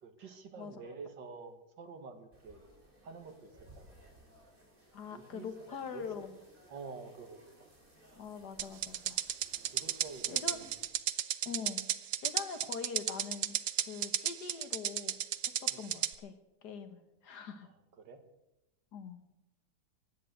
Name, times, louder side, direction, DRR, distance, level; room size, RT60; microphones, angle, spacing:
voice 1, 0.0-2.6 3.0-4.0 5.1-6.1 6.7-7.7 9.7-10.8 15.7-15.9 17.6-18.2, right 4 dB, 80° right, 8 dB, 2.3 m, -49 dB
voice 2, 0.6-1.0 4.9-6.4 8.2-9.2 10.3-10.7 11.5-11.9 12.2-15.2 15.5-17.7 18.9-19.2, left 6 dB, 65° left, 9 dB, 2.0 m, -43 dB
sound 1, 2.3-10.9, right 1 dB, 30° right, 4.3 m, -61 dB
sound 2, 8.6-16.1, right 11 dB, 60° right, 0.9 m, -33 dB
16.0 x 10.5 x 7.9 m, 0.94 s
omnidirectional pair, 1.9 m